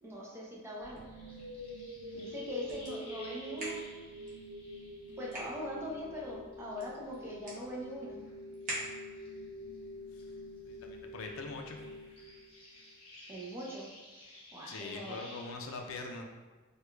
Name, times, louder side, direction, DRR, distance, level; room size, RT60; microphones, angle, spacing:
voice 1, 0.0-1.0 2.1-3.8 5.2-8.2 13.3-13.9 14.5-15.3, equal, 10° right, -4 dB, 0.5 m, -41 dB
sound 1, 0.7-6.2 6.5-9.9 10.1-15.5, left 1 dB, 25° left, 0.8 m, -55 dB
sound 2, 0.7-9.4, right 1 dB, 40° right, 0.9 m, -48 dB
sound 3, 0.8-12.8, equal, 60° right, 1.1 m, -46 dB
voice 2, 10.6-11.8 14.7-16.2, left 3 dB, 70° left, 3 dB, 0.4 m, -43 dB
4.7 x 2.3 x 2.2 m, 1.2 s
head